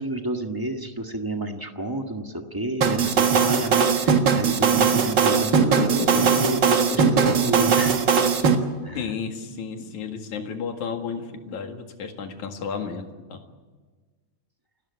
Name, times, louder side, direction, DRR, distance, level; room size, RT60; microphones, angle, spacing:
voice 1, 0.0-8.2 8.8-9.1, right 1 dB, 25° right, 3 dB, 0.4 m, -30 dB
sound 1, 2.8-8.6, right 6 dB, 45° right, 1.9 m, -19 dB
sound 2, 5.6-6.5 6.8-7.6 8.0-8.1 8.5-8.6 9.1-10.5 10.9-11.5, left 5 dB, 55° left, 2.8 m, -32 dB
voice 2, 8.9-13.4, left 6 dB, 70° left, 5 dB, 3.3 m, -33 dB
28.5 x 13.0 x 9.6 m, 1.4 s
omnidirectional pair, 3.5 m